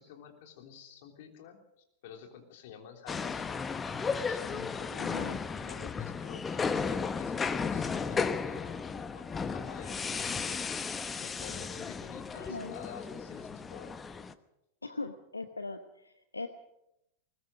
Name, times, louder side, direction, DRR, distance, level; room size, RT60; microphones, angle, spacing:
voice 1, 0.0-1.6 2.0-3.6 4.1-10.6 11.2-14.0, left 8 dB, 50° left, 4 dB, 3.4 m, -49 dB
sound 1, 3.1-14.3, left 5 dB, 15° left, 1.0 m, -34 dB
voice 2, 5.0-5.4 12.3-12.7 14.8-16.5, left 3 dB, 80° left, 9 dB, 1.1 m, -40 dB
20.5 x 20.0 x 6.4 m, 0.82 s
figure-of-eight pair, 90°, 0 cm